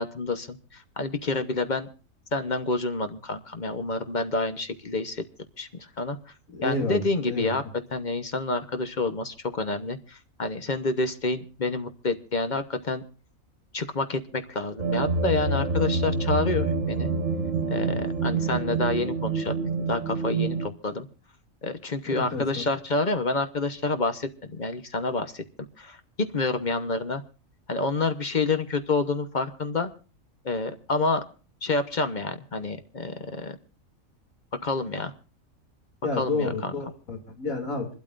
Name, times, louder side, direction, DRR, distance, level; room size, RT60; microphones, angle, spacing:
voice 1, 0.0-1.9 2.3-5.2 5.6-6.2 6.6-7.6 7.9-13.0 13.7-17.1 17.7-21.1 21.6-25.4 25.8-27.2 27.7-29.9 30.4-31.2 31.6-33.6 34.6-35.1 36.1-36.7, left 3 dB, 35° left, 9 dB, 1.0 m, -28 dB
voice 2, 6.5-7.6 22.1-22.4 36.0-37.9, left 3 dB, 85° left, 2 dB, 3.1 m, -30 dB
sound 1, 14.8-20.7, right 4 dB, 70° right, 1.8 m, -27 dB
26.5 x 12.5 x 2.5 m, 0.36 s
omnidirectional pair, 1.4 m